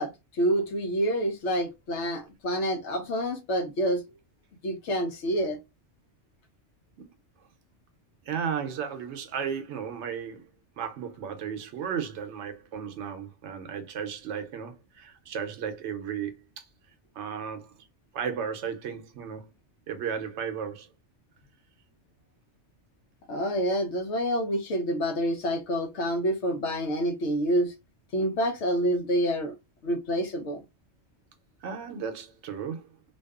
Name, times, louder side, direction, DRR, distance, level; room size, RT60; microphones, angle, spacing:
voice 1, 0.0-4.0 4.6-5.6 23.3-27.7 28.1-29.5 29.8-30.6, equal, 70° left, 1.0 m, -27 dB
voice 2, 8.2-10.5 10.8-16.7 17.2-17.7 18.1-19.5 19.9-20.9 31.6-32.9, right 7 dB, 75° right, 0.9 m, -34 dB
2.6 x 2.3 x 2.3 m
omnidirectional pair, 1.2 m